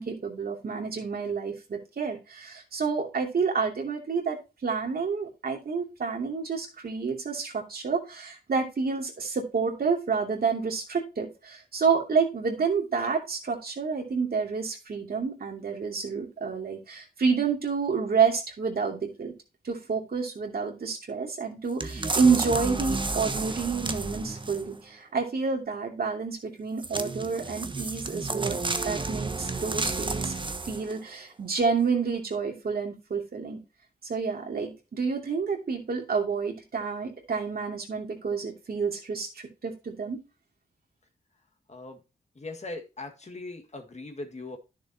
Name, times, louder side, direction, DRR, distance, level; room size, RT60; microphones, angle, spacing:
voice 1, 0.0-19.3 19.6-30.4 30.7-33.6 34.0-40.2, right 5 dB, 60° right, 1 dB, 2.7 m, -29 dB
sound 1, 21.8-24.8 26.8-31.0 31.5-31.6, right 3 dB, 30° right, 1.1 m, -31 dB
voice 2, 41.7-42.0 42.4-44.6, left 2 dB, 40° left, 5 dB, 1.8 m, -39 dB
10.5 x 6.7 x 2.8 m, 0.28 s
cardioid pair, 45°, 17 cm